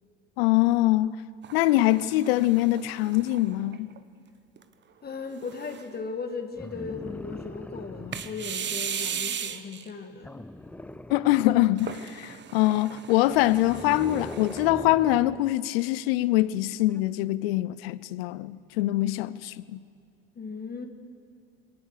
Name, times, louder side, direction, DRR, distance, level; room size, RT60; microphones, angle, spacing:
voice 1, 0.4-1.2 1.5-3.9 11.1-19.8, left 16 dB, 80° left, 0.7 m, -24 dB
sound 1, 1.4-4.0 4.6-4.7 5.3-6.0 8.1-9.9 11.8-14.7, right 8 dB, 40° right, 1.2 m, -37 dB
voice 2, 5.0-10.4 20.3-20.9, left 5 dB, 35° left, 1.9 m, -37 dB
sound 2, 6.6-8.5 10.2-12.0 13.3-15.5 16.9-17.0, left 1 dB, 5° left, 0.6 m, -41 dB
22.0 x 18.5 x 6.8 m
hypercardioid pair, 80°, 29 cm